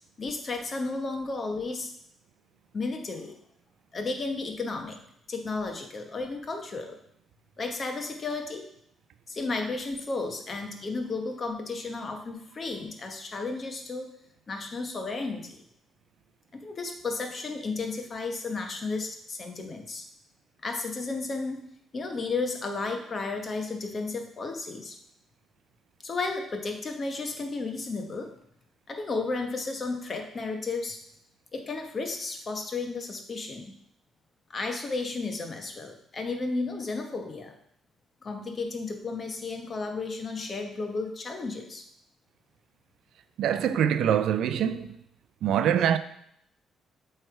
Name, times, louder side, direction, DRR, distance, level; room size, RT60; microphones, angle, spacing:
voice 1, 0.2-1.9 2.7-3.4 3.9-5.0 5.3-7.0 7.6-8.7 9.3-14.1 14.5-15.6 16.5-20.1 20.6-25.0 26.0-28.3 28.9-31.0 31.5-33.7 34.5-37.5 38.2-41.8, left 3 dB, 40° left, 1.1 m, -33 dB
voice 2, 43.4-45.0 45.4-46.0, right 9 dB, 80° right, 0.4 m, -24 dB
7.6 x 3.4 x 4.6 m
cardioid pair, 90°, 0 cm